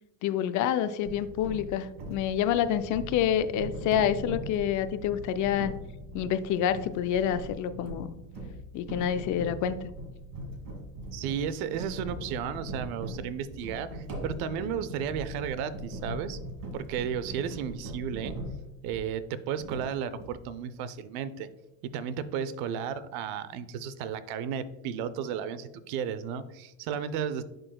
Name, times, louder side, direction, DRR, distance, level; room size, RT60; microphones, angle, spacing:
voice 1, 0.2-5.7 6.1-8.1 8.7-9.9, left 9 dB, 50° left, 12 dB, 0.5 m, -28 dB
sound 1, 1.0-19.2 19.6-20.5, right 1 dB, 50° right, 1.7 m, -40 dB
voice 2, 11.1-16.4 16.7-18.3 18.8-21.5 21.8-27.4, right 8 dB, 70° right, 14 dB, 0.7 m, -33 dB
10.5 x 3.9 x 2.3 m, 0.96 s
supercardioid pair, 115°, 39 cm